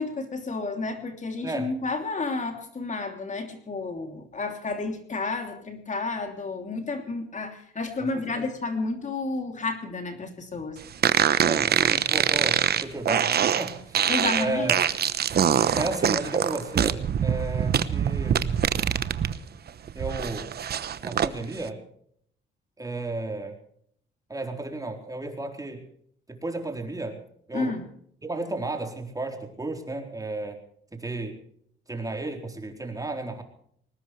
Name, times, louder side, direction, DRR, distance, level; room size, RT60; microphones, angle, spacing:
voice 1, 0.0-10.8 14.1-14.7 27.5-27.8, left 3 dB, 40° left, 5 dB, 3.1 m, -31 dB
voice 2, 1.4-1.7 8.0-8.5 11.4-14.1 14.4-14.8 15.7-18.4 19.9-20.5 21.0-21.8 22.8-23.6 24.3-25.8 26.3-27.2 27.5-27.8 28.2-30.6 30.9-31.4 31.9-33.4, right 2 dB, 15° right, 4 dB, 4.1 m, -33 dB
sound 1, 11.0-19.3 19.7-21.3, right 8 dB, 55° right, 1.1 m, -24 dB
21.0 x 19.0 x 3.3 m, 0.66 s
cardioid pair, 90°, 20 cm